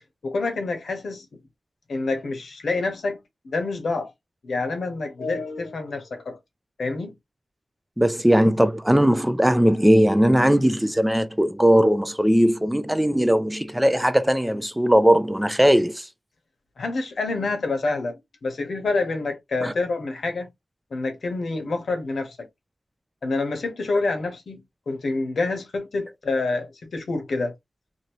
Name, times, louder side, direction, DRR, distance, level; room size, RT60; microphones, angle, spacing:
voice 1, 0.2-1.3 1.9-3.2 3.4-4.1 4.4-6.4 6.8-7.1 16.8-20.5 20.9-22.5 23.2-27.5, left 3 dB, 85° left, 0.9 m, -27 dB
voice 2, 8.0-16.1 19.6-19.7, equal, 5° right, 0.3 m, -19 dB
2.7 x 2.6 x 2.9 m
wide cardioid pair, 115°, 0 cm